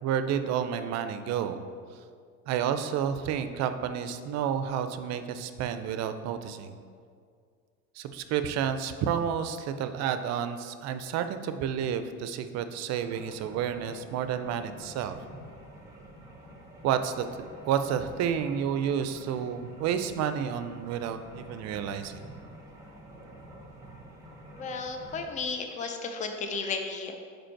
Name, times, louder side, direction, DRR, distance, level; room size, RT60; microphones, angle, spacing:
voice 1, 0.0-1.6 2.5-6.7 8.0-15.2 16.8-17.2 17.7-22.2, right 8 dB, 60° right, 10 dB, 0.5 m, -30 dB
sound 1, 13.0-25.3, right 1 dB, 10° right, 1.5 m, -48 dB
voice 2, 24.5-27.2, left 4 dB, 25° left, 5 dB, 0.5 m, -34 dB
5.1 x 4.5 x 4.5 m, 2.1 s
cardioid pair, 125°, 30 cm